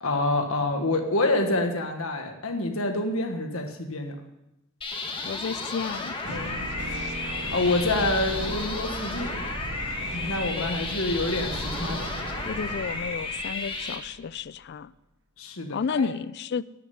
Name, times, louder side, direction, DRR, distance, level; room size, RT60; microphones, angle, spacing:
voice 1, 0.0-4.2 7.5-9.4 9.9-12.1 15.4-16.1, left 2 dB, 70° left, 1.5 m, -27 dB
sound 1, 4.8-14.0, left 3 dB, 25° left, 1.6 m, -33 dB
voice 2, 5.2-6.7 10.6-11.1 12.5-14.9 15.7-16.6, left 5 dB, 50° left, 0.4 m, -32 dB
sound 2, 6.2-14.4, right 2 dB, 60° right, 1.4 m, -37 dB
12.5 x 6.7 x 9.3 m
head